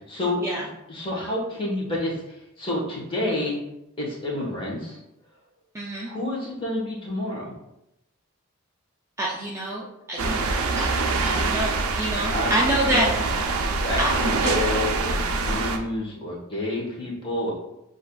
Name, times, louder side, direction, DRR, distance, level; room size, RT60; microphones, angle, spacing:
voice 1, 0.1-3.6 4.0-5.0 6.0-7.5 12.3-12.5 12.8-13.1 13.8-17.5, left 1 dB, 25° left, -5 dB, 1.3 m, -29 dB
voice 2, 5.7-6.1 9.2-10.8 11.2-13.4 14.0-14.1 14.4-14.6, right 1 dB, 15° right, -4 dB, 0.4 m, -27 dB
sound 1, 10.2-15.8, right 3 dB, 80° right, 0.5 m, -25 dB
7.5 x 2.6 x 2.3 m, 0.87 s
head